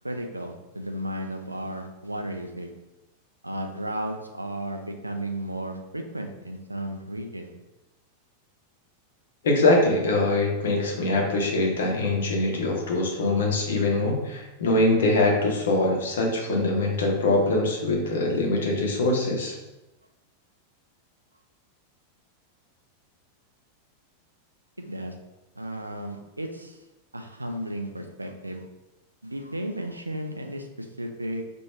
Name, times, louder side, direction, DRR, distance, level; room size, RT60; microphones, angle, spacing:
voice 1, 0.0-2.7 3.4-7.5 24.8-25.1 25.6-26.8 27.1-28.6 29.2-31.4, right 1 dB, 85° right, 4 dB, 0.4 m, -34 dB
voice 2, 9.4-19.6, left 2 dB, 60° left, 1 dB, 0.8 m, -23 dB
2.9 x 2.6 x 4.4 m, 1.0 s
figure-of-eight pair, 90°, 0 cm